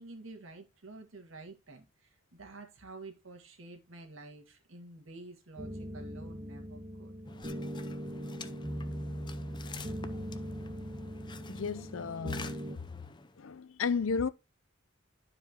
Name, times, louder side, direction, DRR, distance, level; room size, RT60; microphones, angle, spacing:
voice 1, 0.0-7.1, right 2 dB, 75° right, 1.9 m, -50 dB
sound 1, 5.6-12.8, equal, 30° right, 1.5 m, -40 dB
sound 2, 7.2-13.4, left 4 dB, 25° left, 0.6 m, -48 dB
voice 2, 11.5-12.4 13.4-14.3, left 5 dB, 80° left, 0.6 m, -33 dB
11.5 x 4.9 x 3.0 m
head